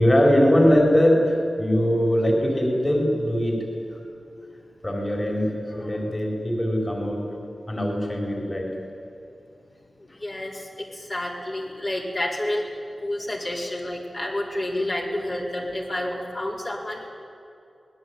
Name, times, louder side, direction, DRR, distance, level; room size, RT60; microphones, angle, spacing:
voice 1, 0.0-3.6 3.9-4.0 4.8-7.4 7.7-8.7 10.1-10.2, equal, 20° left, 0 dB, 4.5 m, -21 dB
voice 2, 10.0-12.7 13.0-17.1, left 1 dB, 40° left, -3 dB, 4.7 m, -29 dB
25.0 x 20.0 x 9.6 m, 2.6 s
wide cardioid pair, 115°, 0 cm